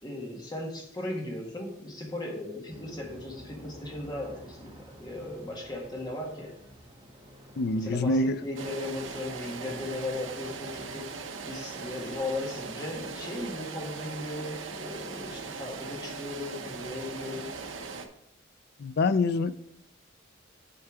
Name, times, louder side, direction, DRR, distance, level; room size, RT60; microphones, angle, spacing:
voice 1, 0.0-6.6 7.8-11.1 11.4-17.5, left 2 dB, 20° left, -1 dB, 1.7 m, -37 dB
Aircraft, 2.7-11.7, equal, 30° right, 1.5 m, -52 dB
voice 2, 7.6-8.4 18.8-19.5, left 2 dB, 55° left, 13 dB, 0.4 m, -25 dB
sound 1, 8.6-18.1, right 4 dB, 70° right, 0.9 m, -39 dB
8.6 x 4.5 x 4.7 m, 0.78 s
head